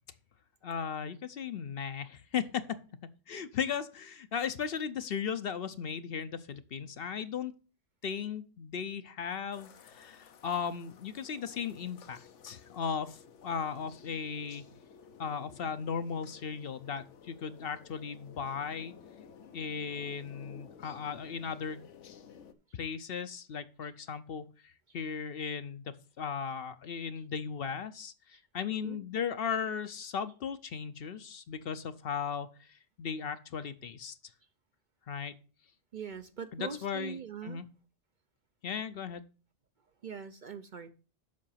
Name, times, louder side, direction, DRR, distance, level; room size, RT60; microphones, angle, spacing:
voice 1, 0.6-2.8 3.3-7.5 8.0-12.2 12.4-14.6 15.2-18.9 19.5-21.9 22.7-34.2 35.1-35.3 36.5-37.7 38.6-39.2, left 7 dB, 60° left, 0.8 m, -37 dB
sound 1, 9.5-22.5, left 6 dB, 80° left, 1.1 m, -54 dB
voice 2, 28.7-29.0 35.9-37.6 40.0-40.9, right 6 dB, 50° right, 0.7 m, -42 dB
7.5 x 5.8 x 5.6 m
omnidirectional pair, 1.2 m